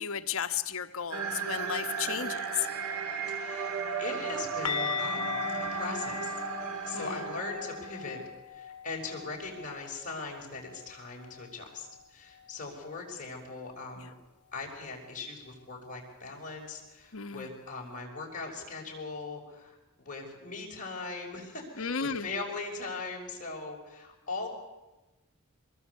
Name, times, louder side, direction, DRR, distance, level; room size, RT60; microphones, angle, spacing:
voice 1, 0.0-2.7 6.9-7.3 14.0-14.1 17.1-17.5 21.8-22.3, left 7 dB, 65° left, 9 dB, 1.1 m, -34 dB
sound 1, 1.1-8.2, right 6 dB, 75° right, 2.5 m, -35 dB
voice 2, 3.3-6.5 6.8-14.1 14.5-24.5, left 3 dB, 35° left, -1 dB, 5.8 m, -40 dB
sound 2, 4.7-10.4 10.7-10.9 11.3-11.4 14.7-14.8, left 6 dB, 90° left, 1.0 m, -38 dB
24.0 x 21.0 x 8.3 m, 1.1 s
head